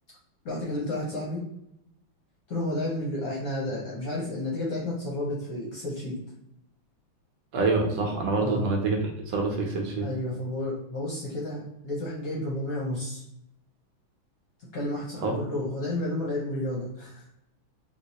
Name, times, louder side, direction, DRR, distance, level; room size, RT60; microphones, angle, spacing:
voice 1, 0.4-1.4 2.5-6.1 8.4-8.7 10.0-13.2 14.7-17.2, left 1 dB, 55° left, -4 dB, 1.0 m, -31 dB
voice 2, 7.5-9.0 9.3-10.1 15.2-15.3, right 3 dB, 75° right, 1 dB, 1.3 m, -26 dB
3.5 x 2.8 x 2.7 m, 0.79 s
omnidirectional pair, 2.3 m